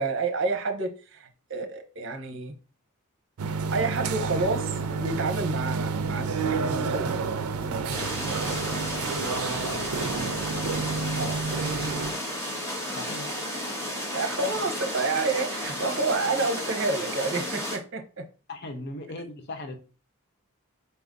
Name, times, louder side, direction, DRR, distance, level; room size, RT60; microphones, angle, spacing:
voice 1, 0.0-2.5 3.7-7.2 7.6-8.1 11.2-11.4 14.1-18.2, right 3 dB, 60° right, 0.8 m, -29 dB
sound 1, 3.4-12.1, right 4 dB, 80° right, 0.4 m, -30 dB
sound 2, 7.3-15.6, left 1 dB, 85° left, 2.0 m, -50 dB
sound 3, 7.9-17.8, equal, 10° left, 1.0 m, -33 dB
voice 2, 9.1-10.2 12.9-13.3 18.5-19.7, left 2 dB, 50° left, 0.5 m, -38 dB
4.2 x 2.6 x 3.6 m
head